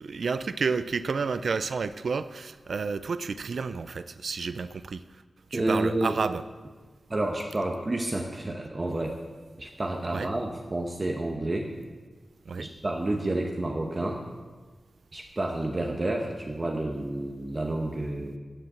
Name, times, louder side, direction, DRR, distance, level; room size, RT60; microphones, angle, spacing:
voice 1, 0.0-5.0 5.5-6.4 10.1-10.3 12.5-12.7, right 5 dB, 75° right, 13 dB, 0.4 m, -30 dB
voice 2, 5.5-6.2 7.1-9.2 9.6-11.7 12.6-14.2 15.1-18.4, right 2 dB, 30° right, 2 dB, 0.9 m, -30 dB
8.9 x 7.6 x 7.2 m, 1.4 s
wide cardioid pair, 125°, 0 cm